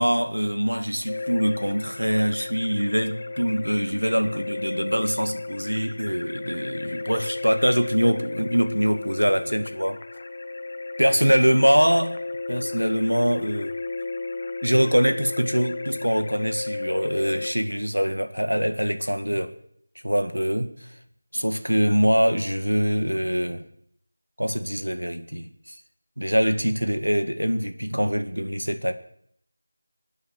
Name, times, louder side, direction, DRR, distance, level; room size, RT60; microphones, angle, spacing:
voice 1, 0.0-10.0 11.0-12.2 12.5-13.8 14.6-19.5 20.0-20.7 21.3-23.6 24.4-25.7 26.2-28.9, equal, 90° right, 2.0 m, -23 dB
sound 1, 1.1-17.5, left 3 dB, 40° left, 0.9 m, -34 dB
25.5 x 9.6 x 4.8 m
figure-of-eight pair, 165°, 0 cm